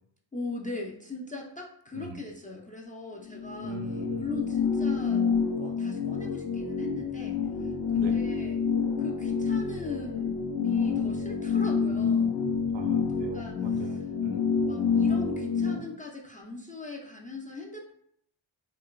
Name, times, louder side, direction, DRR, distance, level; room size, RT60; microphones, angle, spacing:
voice 1, 0.3-3.8 4.1-5.2 5.6-7.7 7.9-8.6 9.0-12.4 13.1-14.0 14.6-17.9, left 3 dB, 20° left, -2 dB, 0.3 m, -39 dB
sound 1, 3.3-15.8, left 6 dB, 70° left, 0.6 m, -28 dB
voice 2, 3.6-4.3 7.9-8.1 11.9-14.4, right 7 dB, 65° right, 5 dB, 0.6 m, -42 dB
2.8 x 2.2 x 2.3 m, 0.69 s
cardioid pair, 60°, 48 cm